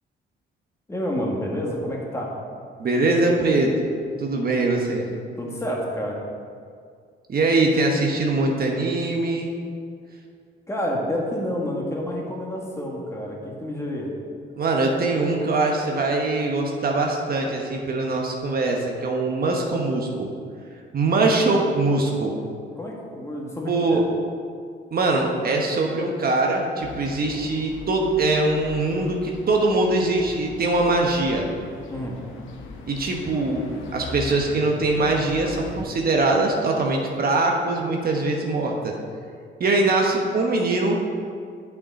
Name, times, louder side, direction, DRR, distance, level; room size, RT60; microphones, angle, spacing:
voice 1, 0.9-2.3 5.4-6.2 10.7-14.1 22.8-24.0 31.9-32.2, equal, 15° left, -2 dB, 1.6 m, -29 dB
voice 2, 2.8-3.7 4.2-5.1 7.3-9.5 14.5-20.3 20.9-22.4 23.7-24.0 24.9-31.5 32.9-33.6 33.9-38.9 39.6-41.0, right 2 dB, 50° right, 1 dB, 1.1 m, -22 dB
sound 1, 26.8-35.8, left 2 dB, 85° left, 0.9 m, -40 dB
8.4 x 5.9 x 4.1 m, 2.2 s
cardioid pair, 90°, 20 cm